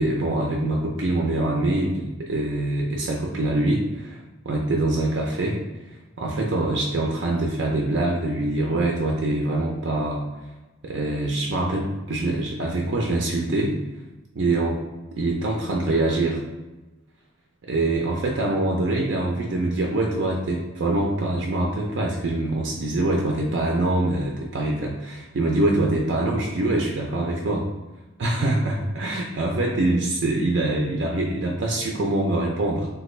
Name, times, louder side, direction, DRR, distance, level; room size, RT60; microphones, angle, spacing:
voice 1, 0.0-4.2 4.5-5.6 6.2-10.2 10.8-13.8 14.4-14.8 15.1-16.4 17.7-27.7 28.2-32.9, right 2 dB, 60° right, -1 dB, 0.4 m, -24 dB
3.2 x 2.3 x 3.1 m, 1.1 s
head